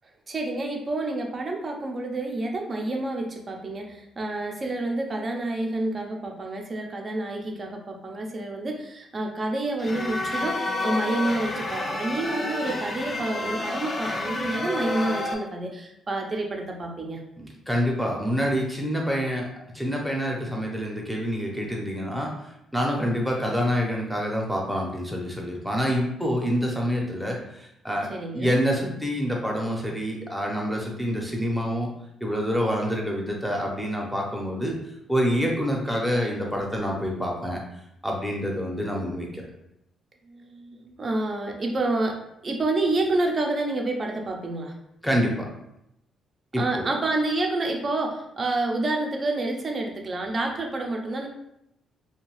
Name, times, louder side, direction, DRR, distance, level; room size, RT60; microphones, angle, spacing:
voice 1, 0.3-17.2 28.1-28.5 40.3-44.7 46.6-51.3, right 2 dB, 35° right, 2 dB, 0.6 m, -28 dB
sound 1, 9.8-15.3, left 2 dB, 35° left, 0.4 m, -29 dB
voice 2, 17.4-19.5 19.7-22.3 22.7-31.9 32.2-34.8 35.1-37.6 38.0-39.4 45.0-45.5 46.5-46.9, equal, ahead, -1 dB, 0.7 m, -27 dB
2.6 x 2.3 x 3.1 m, 0.82 s
cardioid pair, 90°, 0 cm